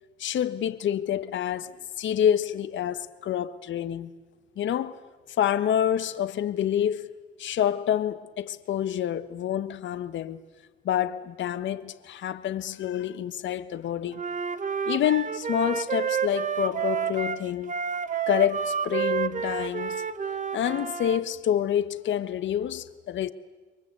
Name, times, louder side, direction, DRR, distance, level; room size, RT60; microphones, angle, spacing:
voice 1, 0.2-1.7 2.0-4.1 4.6-5.0 5.4-7.1 7.4-10.4 10.8-14.2 14.8-17.8 18.3-20.0 20.5-23.3, left 10 dB, 70° left, 1.3 m, -27 dB
Wind instrument woodwind instrument, 14.1-21.2, right 7 dB, 40° right, 1.3 m, -30 dB
27.5 x 23.5 x 8.3 m
cardioid pair, 90°, 20 cm